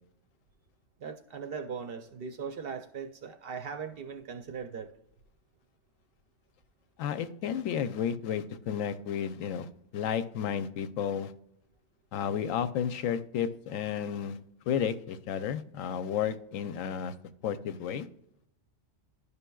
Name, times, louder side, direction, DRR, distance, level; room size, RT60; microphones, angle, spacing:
voice 1, 1.0-4.9, right 6 dB, 60° right, 0.6 m, -39 dB
voice 2, 7.0-11.3 12.1-14.4 14.7-17.1 17.4-18.1, left 8 dB, 90° left, 1.0 m, -32 dB
11.5 x 5.4 x 2.3 m
omnidirectional pair, 1.3 m